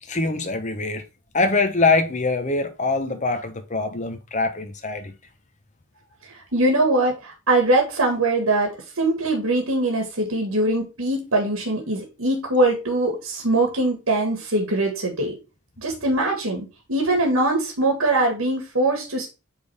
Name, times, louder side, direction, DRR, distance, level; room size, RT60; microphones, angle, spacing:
voice 1, 0.0-1.0 1.3-5.1, left 3 dB, 35° left, 1.0 m, -23 dB
voice 2, 6.3-15.4 15.8-19.3, right 2 dB, 80° right, 1.9 m, -22 dB
8.6 x 3.7 x 3.5 m
head